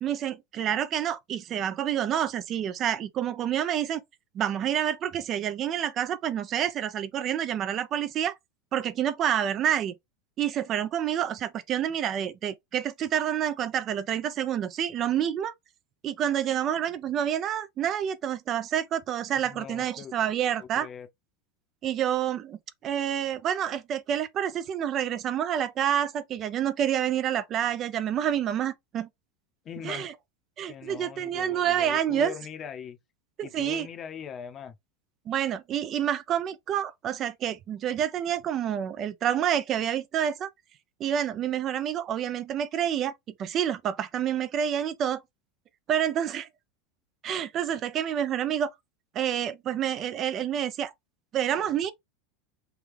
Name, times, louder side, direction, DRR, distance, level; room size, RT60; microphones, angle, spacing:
voice 1, 0.0-4.0 4.3-8.4 8.7-9.9 10.4-15.5 16.0-20.9 21.8-29.1 29.8-30.1 30.6-32.3 33.4-33.9 35.3-40.5 41.0-43.1 43.4-45.2 45.9-46.5 47.2-48.7 49.1-50.9 51.3-51.9, right 10 dB, 35° right, 0.3 m, -28 dB
voice 2, 19.4-20.1 20.6-21.1 29.6-30.1 30.7-33.0 33.4-34.7, left 8 dB, 30° left, 0.7 m, -41 dB
3.4 x 2.3 x 3.2 m
supercardioid pair, 125°, 0 cm